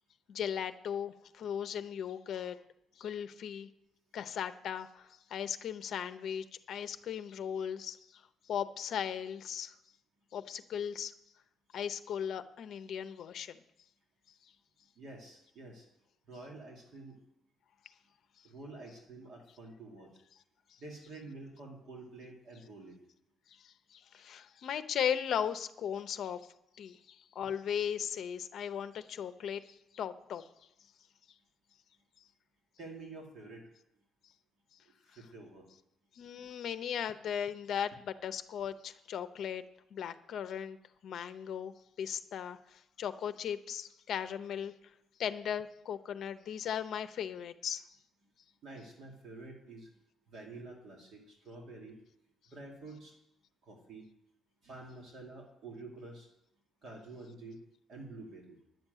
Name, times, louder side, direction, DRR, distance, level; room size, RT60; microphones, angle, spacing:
voice 1, 0.3-2.6 3.0-3.7 4.1-9.7 10.3-11.1 11.7-13.6 14.4-14.5 20.7-20.8 23.5-30.5 36.1-39.6 39.9-40.8 41.0-44.7 45.2-47.8, left 8 dB, 50° left, 11 dB, 0.7 m, -37 dB
voice 2, 15.0-15.8 16.3-17.2 18.4-20.2 20.8-23.0 32.8-33.7 35.1-35.7 48.6-49.9 50.3-52.0 52.5-53.2 53.6-54.1 54.6-56.3 56.8-57.6 57.9-58.6, right 2 dB, 50° right, 0 dB, 2.3 m, -48 dB
10.5 x 7.3 x 9.2 m, 0.81 s
cardioid pair, 165°, 0 cm